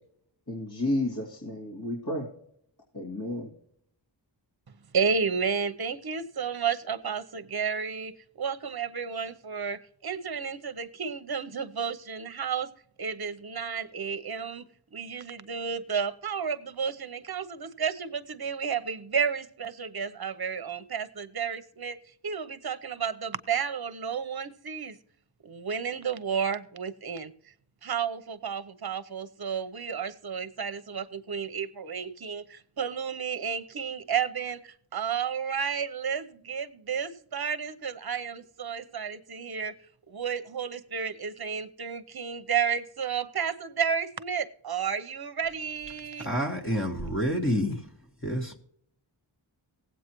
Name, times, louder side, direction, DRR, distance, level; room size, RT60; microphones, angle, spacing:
voice 1, 0.5-2.3 2.9-3.5, left 1 dB, 55° left, 2.8 m, -31 dB
voice 2, 4.7-12.7 13.0-25.0 25.4-27.5 27.8-39.7 40.1-46.3, right 6 dB, 55° right, 0.8 m, -32 dB
voice 3, 46.2-47.9 48.2-48.6, equal, 25° left, 1.7 m, -28 dB
18.5 x 8.2 x 3.0 m
wide cardioid pair, 50°, 46 cm